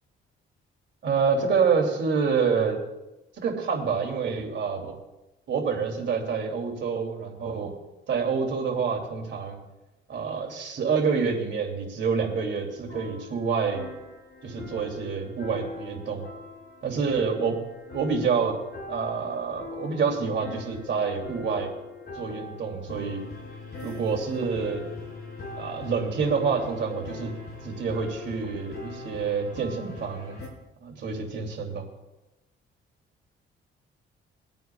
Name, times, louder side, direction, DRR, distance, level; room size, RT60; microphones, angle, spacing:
voice 1, 1.0-2.8 3.4-5.0 5.5-7.7 8.1-9.6 10.1-13.8 14.4-16.2 16.8-17.6 17.9-18.6 18.9-21.7 22.1-23.2 23.8-24.9 25.6-27.3 27.6-30.4 30.8-31.9, right 5 dB, 60° right, 1 dB, 2.7 m, -27 dB
sound 1, 12.7-30.5, left 3 dB, 50° left, 4.8 m, -42 dB
23.0 x 9.1 x 2.3 m, 1.0 s
cardioid pair, 100°, 21 cm